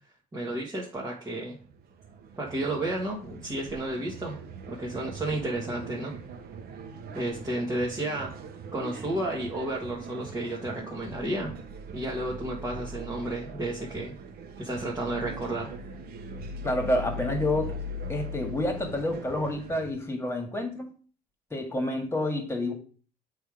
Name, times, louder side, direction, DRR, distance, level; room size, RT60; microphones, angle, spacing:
voice 1, 0.3-1.6 2.4-4.4 4.7-6.1 7.1-8.3 8.7-11.5 11.9-14.1 14.6-15.7, right 1 dB, 15° right, -4 dB, 1.7 m, -32 dB
sound 1, 1.6-19.9, right 1 dB, 65° right, 1.0 m, -40 dB
voice 2, 16.6-17.7 18.1-20.9 21.5-22.7, left 1 dB, 15° left, 3 dB, 2.0 m, -29 dB
7.7 x 3.4 x 5.0 m, 0.40 s
cardioid pair, 110°, 17 cm